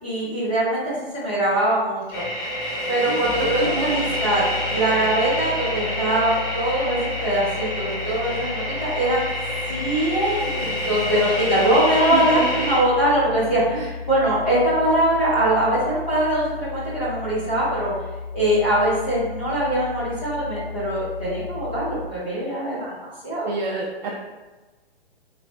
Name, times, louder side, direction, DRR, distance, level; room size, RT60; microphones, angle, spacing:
voice 1, 0.0-2.2 2.9-9.3 9.7-17.9 18.3-22.9 23.2-23.5, right 1 dB, 10° left, -10 dB, 0.3 m, -22 dB
sound 1, 2.1-12.8, left 1 dB, 50° left, 1.3 m, -28 dB
voice 2, 3.1-4.1 11.1-11.3 12.1-12.5 13.7-13.9 23.4-24.1, right 3 dB, 45° right, -2 dB, 0.5 m, -28 dB
sound 2, 3.2-22.1, left 5 dB, 15° right, 0.8 m, -35 dB
3.2 x 2.0 x 4.1 m, 1.2 s
hypercardioid pair, 140°, 31 cm